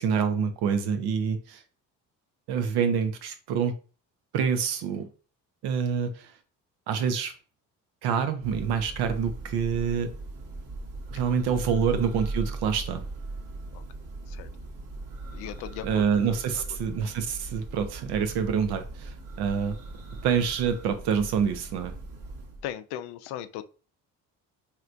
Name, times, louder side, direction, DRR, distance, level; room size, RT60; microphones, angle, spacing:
voice 1, 0.0-1.6 2.5-3.7 4.3-5.1 5.6-6.3 6.9-7.3 8.0-10.1 11.1-13.0 15.8-19.8 20.2-21.9, right 7 dB, 70° right, 0.8 m, -27 dB
Church bell, 8.4-22.7, right 2 dB, 55° right, 1.3 m, -39 dB
voice 2, 15.3-16.1 22.6-23.6, left 11 dB, 75° left, 0.5 m, -37 dB
3.2 x 2.9 x 2.5 m
hypercardioid pair, 60°, 39 cm